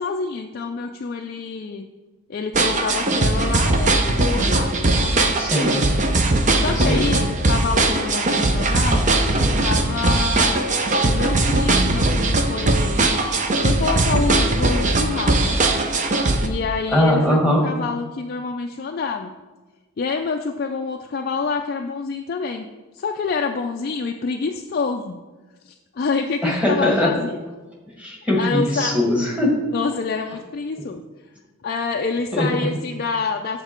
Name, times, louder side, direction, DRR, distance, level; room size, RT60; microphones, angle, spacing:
voice 1, 0.0-1.9 2.3-5.4 6.6-10.7 11.0-13.1 13.6-15.6 16.4-19.3 20.0-22.7 22.9-25.2 25.7-27.4 28.4-29.0 29.7-31.0 31.6-33.6, left 4 dB, 45° left, 4 dB, 0.4 m, -27 dB
sound 1, 2.5-16.5, right 2 dB, 35° right, 0.6 m, -19 dB
voice 2, 5.4-5.8 6.7-7.1 16.9-17.6 26.4-27.1 28.0-29.5 32.3-32.7, left 1 dB, 5° right, -2 dB, 1.6 m, -20 dB
8.0 x 6.5 x 4.4 m, 1.3 s
head